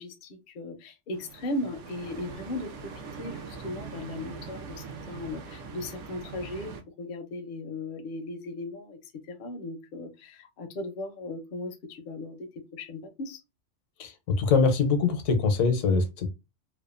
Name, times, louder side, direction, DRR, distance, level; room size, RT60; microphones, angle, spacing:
voice 1, 0.0-6.7 7.0-13.4, left 2 dB, 55° left, 0.6 m, -37 dB
sound 1, 1.1-6.8, right 5 dB, 85° right, 0.9 m, -42 dB
voice 2, 14.0-16.3, left 4 dB, 80° left, 0.9 m, -23 dB
2.7 x 2.2 x 2.3 m
omnidirectional pair, 1.3 m